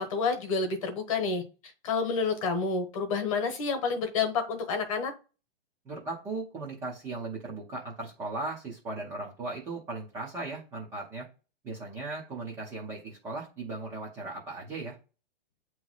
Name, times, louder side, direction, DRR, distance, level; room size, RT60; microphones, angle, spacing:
voice 1, 0.0-1.4 1.8-5.1, left 4 dB, 35° left, 6 dB, 1.2 m, -29 dB
voice 2, 5.8-11.3 11.6-15.0, right 3 dB, 10° right, -4 dB, 0.6 m, -37 dB
8.2 x 3.0 x 3.9 m, 0.34 s
hypercardioid pair, 175°, 29 cm